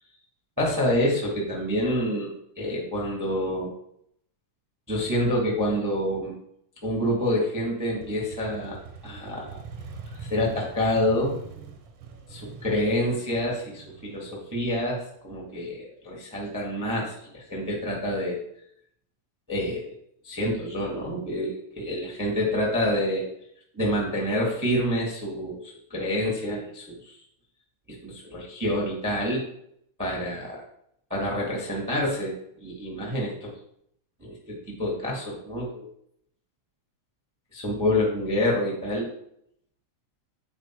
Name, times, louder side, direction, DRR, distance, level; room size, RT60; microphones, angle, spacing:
voice 1, 0.6-2.3 2.6-3.7 4.9-6.3 6.8-9.6 10.2-11.3 12.3-18.4 19.5-19.9 20.2-23.2 23.7-27.2 27.9-29.4 30.0-30.6 31.1-32.3 32.6-33.5 34.2-35.9 37.5-39.1, left 1 dB, 15° right, -3 dB, 0.5 m, -27 dB
Motorcycle, 8.0-15.6, right 5 dB, 70° right, 1.4 m, -43 dB
8.1 x 4.7 x 4.5 m, 0.72 s
omnidirectional pair, 3.8 m